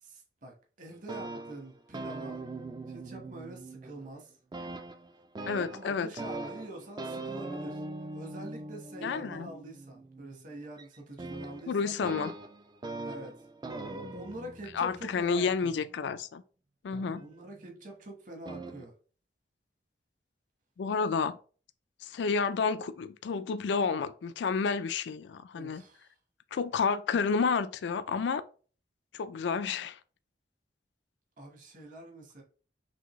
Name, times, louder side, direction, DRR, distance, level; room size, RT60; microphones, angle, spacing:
voice 1, 0.0-2.4 2.9-4.3 5.7-12.0 13.0-13.4 13.9-15.8 17.2-18.9 25.5-26.1 31.4-32.4, right 1 dB, 45° right, 1.2 m, -45 dB
sound 1, 0.9-4.2 4.5-16.1 16.9-17.8 18.5-18.8, right 2 dB, 25° right, 0.4 m, -42 dB
voice 2, 5.5-6.1 9.0-9.5 11.7-12.3 14.7-16.4 16.8-17.2 20.8-21.4 22.0-25.8 26.5-28.4 29.1-30.0, left 5 dB, 65° left, 0.3 m, -30 dB
6.1 x 2.7 x 3.1 m
head